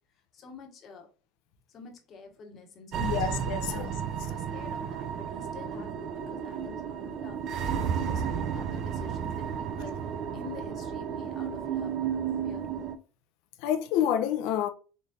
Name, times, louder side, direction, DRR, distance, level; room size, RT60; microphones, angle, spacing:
voice 1, 0.3-1.1 1.7-3.1 3.6-3.9 4.2-7.4 7.8-10.0 10.3-12.7, left 4 dB, 35° left, 1.1 m, -47 dB
sound 1, 2.9-13.0, right 7 dB, 45° right, 0.4 m, -33 dB
voice 2, 3.0-3.9 13.6-14.7, left 10 dB, 65° left, 0.6 m, -28 dB
4.0 x 3.3 x 2.3 m
cardioid pair, 155°, 0 cm